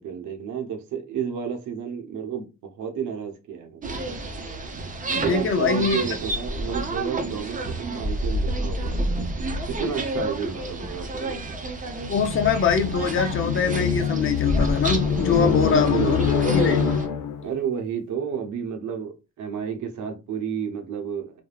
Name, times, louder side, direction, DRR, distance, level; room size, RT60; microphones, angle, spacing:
voice 1, 0.0-4.0 5.1-9.0 9.7-11.6 15.3-16.3 17.4-21.4, right 7 dB, 75° right, 0.8 m, -31 dB
sound 1, 3.8-17.1, right 1 dB, 25° right, 0.6 m, -30 dB
voice 2, 5.2-6.0 12.1-16.2 16.5-16.8, left 6 dB, 45° left, 0.6 m, -23 dB
sound 2, 12.0-17.5, left 7 dB, 85° left, 0.6 m, -25 dB
3.4 x 2.2 x 2.3 m
cardioid pair, 90°, 30 cm